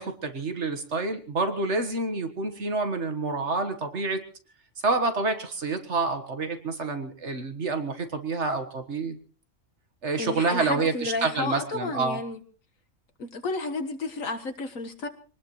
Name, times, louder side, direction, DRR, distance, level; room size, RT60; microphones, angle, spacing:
voice 1, 0.0-4.2 4.8-9.2 10.0-12.2, right 3 dB, 55° right, 8 dB, 1.8 m, -28 dB
voice 2, 10.2-12.4 13.2-15.1, left 3 dB, 75° left, 6 dB, 1.9 m, -32 dB
24.0 x 19.5 x 3.1 m, 0.38 s
omnidirectional pair, 1.4 m